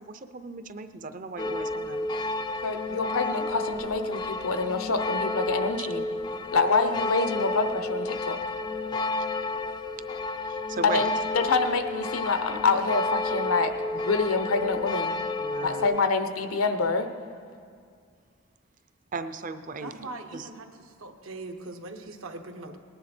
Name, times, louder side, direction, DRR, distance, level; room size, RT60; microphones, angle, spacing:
voice 1, 0.0-2.1 5.8-5.9 10.4-11.1 15.4-15.9 19.1-20.5, right 3 dB, 40° right, 10 dB, 0.5 m, -37 dB
sound 1, 1.4-16.0, left 2 dB, 20° left, 0.3 m, -31 dB
voice 2, 2.6-6.0 6.5-8.4 10.8-15.2 15.6-17.1, left 4 dB, 90° left, 8 dB, 0.9 m, -26 dB
voice 3, 19.8-20.6 21.0-22.8, right 2 dB, 75° right, 4 dB, 1.1 m, -40 dB
19.5 x 10.5 x 4.4 m, 2.2 s
head